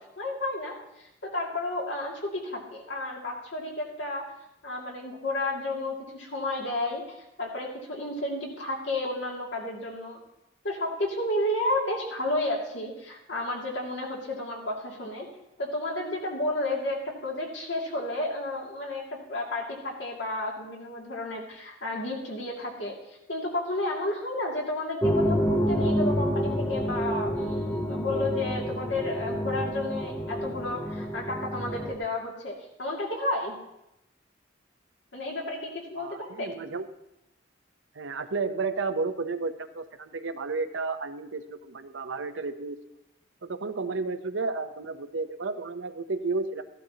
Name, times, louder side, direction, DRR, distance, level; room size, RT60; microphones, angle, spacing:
voice 1, 0.2-1.1 1.3-4.2 4.6-7.0 7.4-10.2 10.6-15.3 15.6-33.6 35.1-36.5, left 1 dB, 70° left, -1 dB, 2.4 m, -32 dB
sound 1, 25.0-31.9, equal, 10° left, 0.8 m, -28 dB
voice 2, 36.0-36.9 37.9-42.8 43.4-46.6, right 4 dB, 80° right, 9 dB, 0.7 m, -32 dB
14.5 x 12.0 x 2.8 m, 0.87 s
head